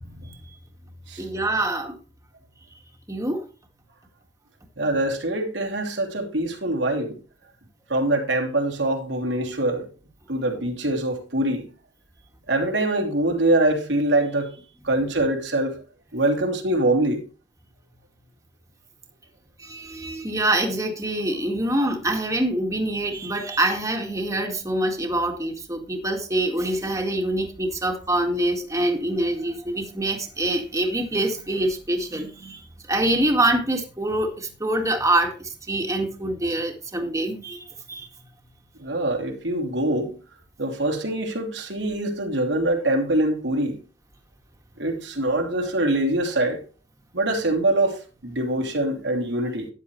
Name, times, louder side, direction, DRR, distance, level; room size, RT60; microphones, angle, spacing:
voice 1, 0.1-0.4 1.2-2.0 3.1-3.4 19.6-32.6 32.9-38.1, right 1 dB, 20° right, 1.9 m, -25 dB
voice 2, 4.8-7.2 7.9-9.9 10.3-11.6 12.5-14.6 14.8-15.8 16.1-17.2 38.8-40.2 40.6-43.8 44.8-46.6 47.1-49.7, right 1 dB, 90° right, 3.0 m, -24 dB
13.0 x 10.0 x 3.2 m
head